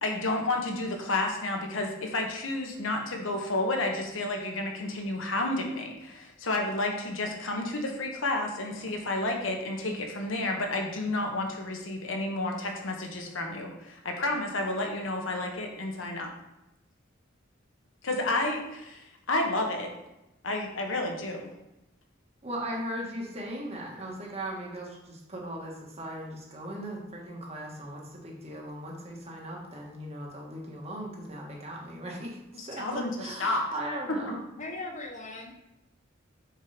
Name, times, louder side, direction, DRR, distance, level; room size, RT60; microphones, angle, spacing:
voice 1, 0.0-16.3 18.0-19.9 20.4-21.5 32.5-33.7, left 2 dB, 80° left, 2 dB, 1.3 m, -31 dB
voice 2, 22.4-34.4, right 1 dB, 30° right, -2 dB, 1.7 m, -38 dB
voice 3, 34.6-35.5, left 2 dB, 40° left, 2 dB, 1.1 m, -38 dB
6.5 x 4.7 x 5.1 m, 0.93 s
head